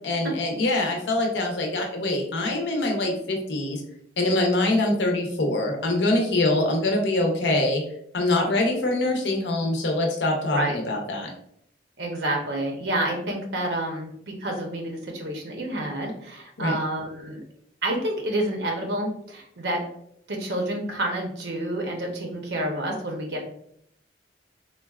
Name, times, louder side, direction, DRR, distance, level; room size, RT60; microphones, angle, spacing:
voice 1, 0.0-3.8 4.2-7.8 8.1-11.3 16.6-16.8, left 2 dB, 80° left, 1 dB, 0.7 m, -24 dB
voice 2, 12.0-17.4 17.8-19.8 20.3-23.5, right 1 dB, 70° right, 1 dB, 0.7 m, -29 dB
3.8 x 2.2 x 2.3 m, 0.69 s
head